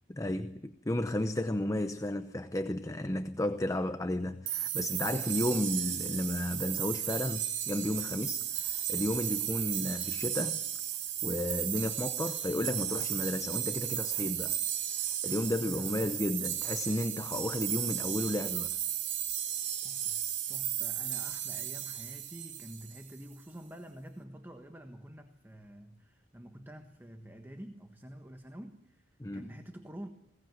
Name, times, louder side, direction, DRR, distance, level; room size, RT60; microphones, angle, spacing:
voice 1, 0.1-10.6 11.2-14.6 15.1-18.7 29.2-29.5, left 1 dB, 20° left, 0.8 m, -33 dB
sound 1, 4.5-23.1, right 10 dB, 85° right, 1.8 m, -35 dB
voice 2, 15.6-16.2 19.8-29.0 29.3-30.1, equal, 10° right, 1.3 m, -48 dB
21.5 x 18.0 x 9.2 m
head